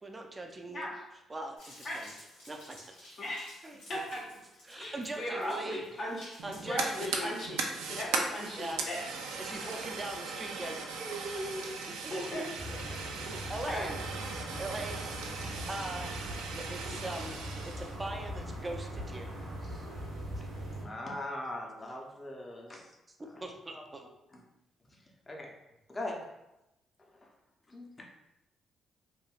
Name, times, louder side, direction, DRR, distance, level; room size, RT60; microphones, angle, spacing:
voice 1, 0.0-0.9 1.3-2.1 2.4-2.8 3.2-3.8 4.6-5.8 6.4-7.3 8.6-8.9 9.4-11.6 12.0-12.1 12.6-12.8 13.5-14.0 14.6-17.4 17.6-19.3 23.4-24.0, right 2 dB, 25° right, 3 dB, 0.5 m, -41 dB
voice 2, 0.7-1.0 1.8-2.0 3.2-3.6 3.9-4.2 4.7-6.3 6.6-9.0 9.6-9.7 12.1-12.4 12.7-12.9 13.6-13.9 19.7-19.8, left 1 dB, 55° left, -6 dB, 0.9 m, -37 dB
sound 1, 1.6-7.3, left 1 dB, 85° left, 1.1 m, -55 dB
Fire, 6.4-17.9, right 4 dB, 80° right, 0.3 m, -38 dB
sound 2, 12.6-20.8, equal, 65° right, 0.9 m, -41 dB
voice 3, 20.7-22.9 23.2-23.4 23.7-23.8 24.3-24.4 24.9-25.5 25.9-26.2 27.0-27.3 27.7-28.1, left 1 dB, 30° left, 0 dB, 0.7 m, -41 dB
3.1 x 2.6 x 2.4 m, 0.91 s
hypercardioid pair, 50°, 0 cm